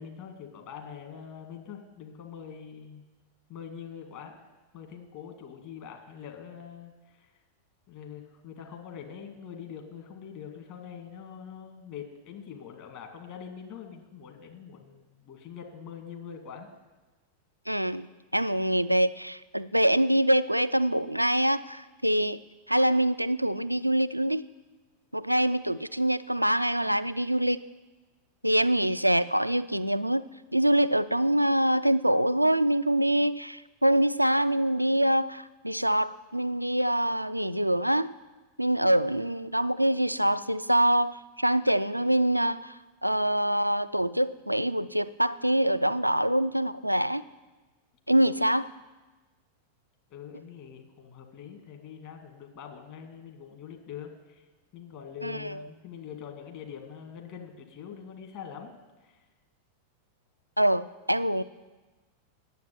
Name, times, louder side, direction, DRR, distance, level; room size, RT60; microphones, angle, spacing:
voice 1, 0.0-3.0 3.5-4.4 4.7-7.3 7.9-16.7 50.1-54.5 54.7-59.2, left 7 dB, 45° left, 4 dB, 2.0 m, -44 dB
voice 2, 17.7-18.1 18.3-22.4 22.7-24.4 25.1-27.6 28.4-38.1 38.6-42.8 43.0-47.2 48.1-48.7 55.2-55.6 60.6-61.4, right 1 dB, 90° right, 15 dB, 0.3 m, -25 dB
9.2 x 7.8 x 9.3 m, 1.2 s
figure-of-eight pair, 90°, 0 cm